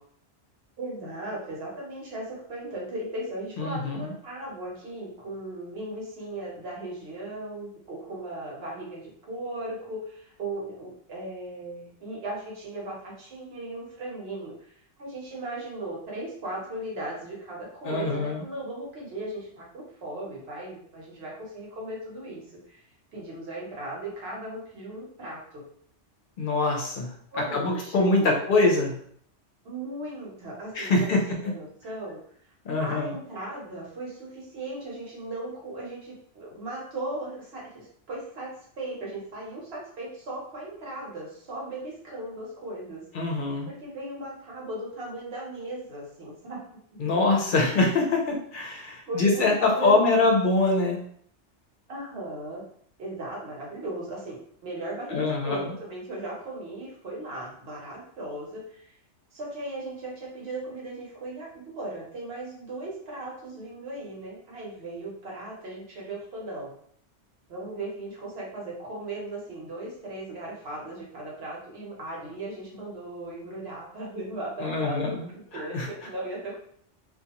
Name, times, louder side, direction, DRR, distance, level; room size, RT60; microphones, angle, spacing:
voice 1, 0.8-22.8 23.1-25.6 27.3-28.4 29.6-31.1 31.4-32.2 32.8-43.0 43.3-46.6 46.9-47.2 49.1-50.3 51.9-52.7 53.0-59.0 59.3-66.7 67.5-76.6, right 1 dB, 60° right, -3 dB, 1.0 m, -37 dB
voice 2, 3.6-4.1 17.9-18.4 26.4-27.1 27.5-29.0 30.7-31.2 32.6-33.1 43.1-43.7 47.0-51.0 55.1-55.7 74.6-75.3 75.5-75.9, left 3 dB, 55° left, 1 dB, 0.7 m, -24 dB
2.5 x 2.3 x 2.8 m, 0.63 s
omnidirectional pair, 1.2 m